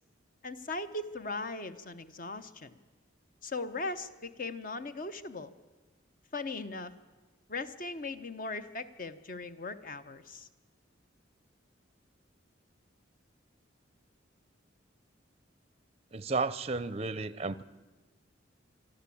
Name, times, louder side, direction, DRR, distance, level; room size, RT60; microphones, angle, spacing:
voice 1, 0.4-2.8 3.4-5.5 6.3-6.9 7.5-10.5, left 3 dB, 45° left, 11 dB, 0.9 m, -39 dB
voice 2, 16.1-17.6, right 3 dB, 30° right, 17 dB, 0.6 m, -33 dB
24.5 x 12.5 x 8.5 m, 1.2 s
head